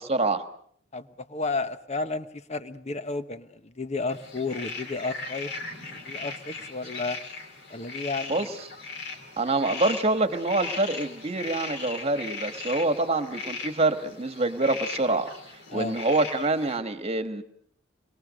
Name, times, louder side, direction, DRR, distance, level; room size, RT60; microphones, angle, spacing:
voice 1, 0.1-0.4 8.3-8.5 9.4-15.3 15.7-17.4, right 2 dB, 35° right, 9 dB, 1.7 m, -26 dB
voice 2, 0.9-5.5 5.9-7.2 7.7-8.5 15.7-16.0, left 3 dB, 35° left, 11 dB, 1.2 m, -32 dB
sound 1, 4.1-16.8, left 4 dB, 65° left, 3.8 m, -38 dB
26.5 x 22.0 x 6.5 m, 0.63 s
head